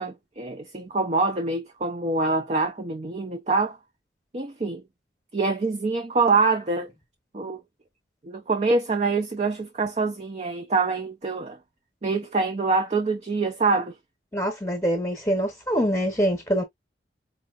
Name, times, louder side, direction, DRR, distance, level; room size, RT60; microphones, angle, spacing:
voice 1, 0.0-3.8 4.3-4.8 5.3-6.9 7.3-7.6 8.2-11.6 12.0-13.9, right 3 dB, 35° right, 0.5 m, -25 dB
voice 2, 14.3-16.6, equal, 15° left, 0.9 m, -24 dB
4.7 x 2.8 x 2.4 m
head